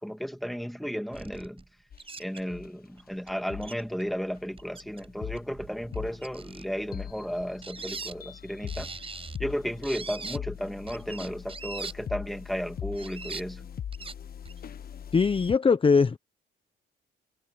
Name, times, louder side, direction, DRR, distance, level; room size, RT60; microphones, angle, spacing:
voice 1, 0.0-1.6 2.2-8.9 9.4-13.7, equal, ahead, 2.2 m, -34 dB
sound 1, 1.1-1.6 2.0-2.4 3.0-3.1 3.3-3.4 3.6-4.0 4.4-5.1 5.3-6.6 7.4-8.1 8.7-9.4 9.8-10.4 10.9-11.9 12.8-13.4 13.9-14.1 14.4-14.6, right 4 dB, 30° right, 6.3 m, -40 dB
sound 2, 1.9-2.2 2.5-2.7 3.5-3.7 4.3-15.6, left 9 dB, 50° left, 1.1 m, -41 dB
voice 2, 15.1-16.2, left 5 dB, 25° left, 0.8 m, -21 dB
cardioid pair, 90°, 20 cm